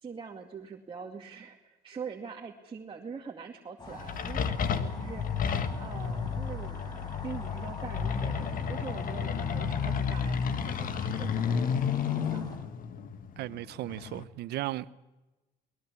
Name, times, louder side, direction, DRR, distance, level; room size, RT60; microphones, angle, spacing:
voice 1, 0.0-5.4 5.8-6.8 7.2-12.5, right 5 dB, 30° right, 2.3 m, -43 dB
sound 1, 3.8-12.6, left 2 dB, 25° left, 5.1 m, -45 dB
sound 2, 3.9-14.2, left 6 dB, 55° left, 1.6 m, -32 dB
voice 2, 13.4-14.9, right 15 dB, 75° right, 1.0 m, -36 dB
23.5 x 20.5 x 8.3 m
cardioid pair, 110°, 17 cm